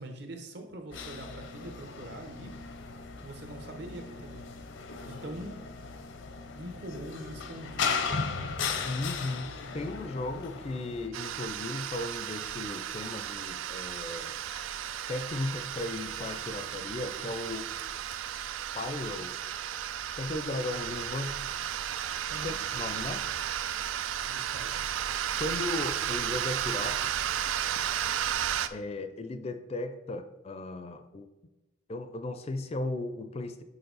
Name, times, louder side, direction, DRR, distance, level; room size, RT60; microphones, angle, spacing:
voice 1, 0.0-2.5 3.2-4.5 5.0-5.8 6.6-8.5 22.3-22.6 24.3-24.8, right 1 dB, 60° right, 4 dB, 1.0 m, -43 dB
sound 1, 0.9-11.1, left 5 dB, 80° left, 0.6 m, -37 dB
voice 2, 8.8-14.4 15.1-17.7 18.3-18.4 18.7-19.3 20.2-21.4 22.4-23.2 25.4-27.1 28.7-31.3 31.9-33.6, left 2 dB, 30° left, 9 dB, 0.4 m, -36 dB
sound 2, 11.1-28.7, right 10 dB, 90° right, 0.4 m, -34 dB
6.8 x 4.5 x 4.0 m, 1.1 s
head